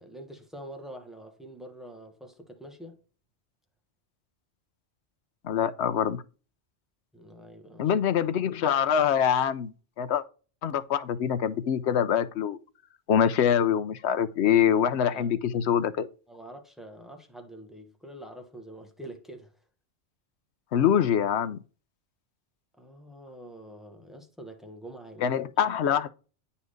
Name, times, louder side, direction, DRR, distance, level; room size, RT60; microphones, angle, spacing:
voice 1, 0.0-3.0 7.1-7.9 15.1-15.3 16.3-19.5 22.8-25.5, right 1 dB, ahead, 1.2 m, -45 dB
voice 2, 5.4-6.2 7.8-10.2 10.6-12.6 13.1-16.1 20.7-21.6 25.2-26.1, left 8 dB, 75° left, 1.0 m, -24 dB
9.4 x 4.2 x 5.1 m
omnidirectional pair, 1.2 m